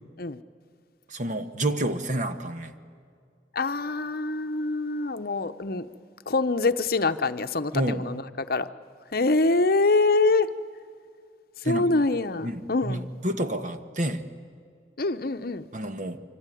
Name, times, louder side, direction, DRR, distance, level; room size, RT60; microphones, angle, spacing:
voice 1, 1.1-2.7 7.7-8.0 11.6-11.9 12.4-14.2 15.7-16.2, right 1 dB, 45° right, 8 dB, 1.3 m, -29 dB
voice 2, 3.5-5.9 6.3-8.7 9.1-10.5 11.6-13.1 15.0-15.7, left 3 dB, 55° left, 10 dB, 0.8 m, -25 dB
25.5 x 25.5 x 9.2 m, 2.2 s
head